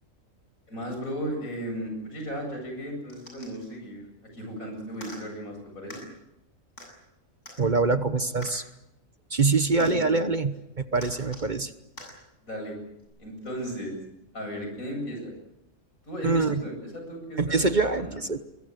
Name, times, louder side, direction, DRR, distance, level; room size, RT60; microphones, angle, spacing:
voice 1, 0.7-4.1 4.3-6.0 9.8-10.3 12.4-12.8 13.2-14.0 14.3-15.3 16.1-18.2, equal, 85° left, 3 dB, 8.7 m, -35 dB
sound 1, 3.1-3.7 4.9-5.2 5.9-6.0 6.8-6.9 7.5-7.6 8.4-8.6 9.8-10.0 11.0-11.5 12.0-12.1 13.0-13.1, left 1 dB, 65° left, 8.0 m, -44 dB
voice 2, 7.6-8.6 9.3-11.7 16.2-16.6 17.4-18.4, right 3 dB, 40° right, 11 dB, 1.1 m, -24 dB
23.5 x 23.0 x 8.1 m, 0.88 s
omnidirectional pair, 1.4 m